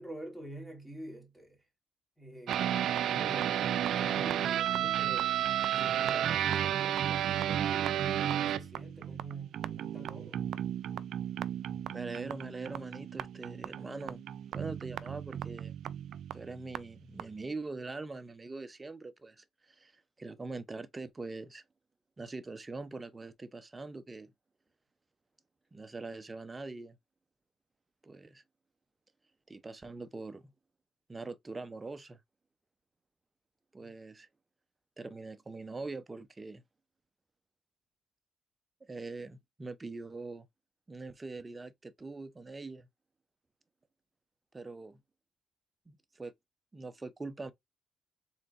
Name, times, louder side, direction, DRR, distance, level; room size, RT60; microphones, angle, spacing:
voice 1, 0.0-1.7 2.2-5.4 5.7-10.4 33.8-33.9, right 1 dB, ahead, 2.3 m, -47 dB
sound 1, 2.5-16.8 17.2-17.3, right 10 dB, 75° right, 0.4 m, -33 dB
voice 2, 11.9-14.2 14.5-15.7 16.3-21.6 22.2-24.3 25.7-27.0 28.0-28.4 29.5-30.5 31.1-32.2 33.7-34.3 35.0-36.6 38.8-40.5 40.9-42.9 44.5-45.0 45.9-46.3 46.7-47.5, right 3 dB, 25° right, 0.7 m, -43 dB
4.4 x 3.7 x 2.5 m
cardioid pair, 90°, 0 cm